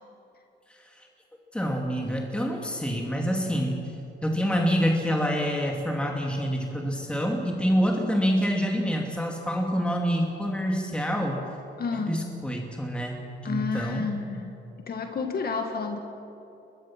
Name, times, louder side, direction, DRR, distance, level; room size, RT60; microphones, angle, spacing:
voice 1, 0.7-1.1 1.5-3.9 4.2-11.4 12.1-14.1, equal, 5° left, 0 dB, 2.5 m, -27 dB
voice 2, 11.8-12.3 13.4-14.6 14.9-16.0, left 4 dB, 50° left, 4 dB, 1.9 m, -30 dB
23.0 x 21.0 x 6.1 m, 2.9 s
cardioid pair, 90°, 20 cm